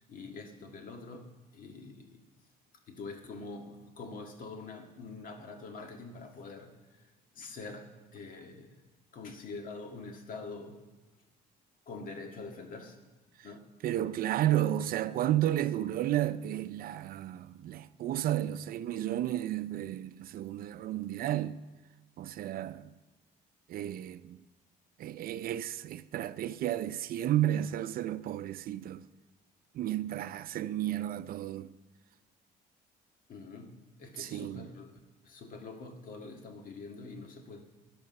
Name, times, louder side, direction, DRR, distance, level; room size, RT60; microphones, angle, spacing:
voice 1, 0.0-2.2 2.9-6.7 7.3-8.8 9.1-10.8 11.9-13.0 13.4-13.7 33.3-35.0 35.2-37.6, left 3 dB, 55° left, 1.8 m, -45 dB
voice 2, 13.8-21.6 22.2-22.9 23.7-24.4 25.0-29.0 29.7-31.7 34.2-34.7, right 12 dB, 60° right, 0.5 m, -32 dB
13.5 x 10.5 x 5.4 m
cardioid pair, 110°, 17 cm